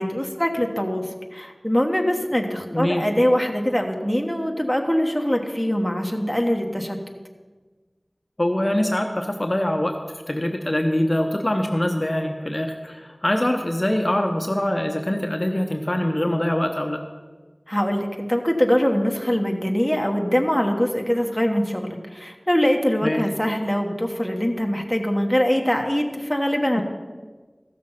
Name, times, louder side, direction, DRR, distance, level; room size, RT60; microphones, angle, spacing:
voice 1, 0.0-7.0 17.7-26.8, equal, 5° left, 2 dB, 1.2 m, -23 dB
voice 2, 2.7-3.0 8.4-10.0 10.3-17.0 23.0-23.2, left 1 dB, 40° left, 4 dB, 0.8 m, -23 dB
14.0 x 6.4 x 5.7 m, 1.4 s
wide cardioid pair, 45°, 0 cm